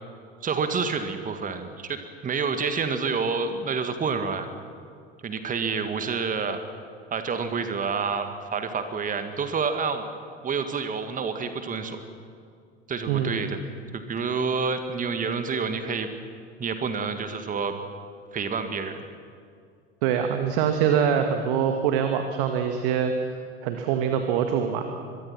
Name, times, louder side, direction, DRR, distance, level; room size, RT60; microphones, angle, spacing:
voice 1, 0.4-4.5 5.2-6.6 7.1-10.1 10.4-12.0 12.9-13.6 13.9-16.1 16.6-17.7 18.3-19.1, right 5 dB, 25° right, 8 dB, 2.0 m, -28 dB
voice 2, 13.1-13.4 20.0-23.1 23.6-24.9, right 8 dB, 55° right, 6 dB, 1.8 m, -24 dB
25.0 x 22.5 x 6.0 m, 2.3 s
figure-of-eight pair, 75°, 33 cm